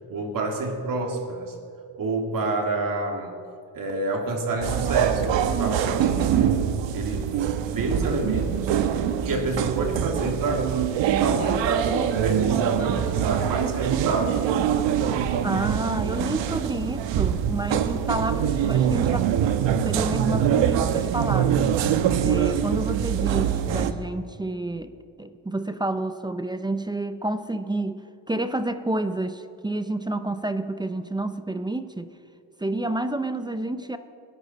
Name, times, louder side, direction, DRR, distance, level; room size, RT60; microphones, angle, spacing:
voice 1, 0.1-1.6 2.0-3.4 3.7-6.6 6.9-8.8 9.2-10.8 11.2-14.4, right 2 dB, 45° right, 3 dB, 2.4 m, -28 dB
sound 1, 4.6-23.9, right 9 dB, 65° right, 1.1 m, -24 dB
voice 2, 15.4-19.3 19.6-21.7 22.2-24.9 25.2-28.0 28.3-32.1 32.6-34.0, right 2 dB, 10° right, 10 dB, 0.5 m, -29 dB
29.0 x 11.5 x 4.1 m, 2.4 s
cardioid pair, 120°, 48 cm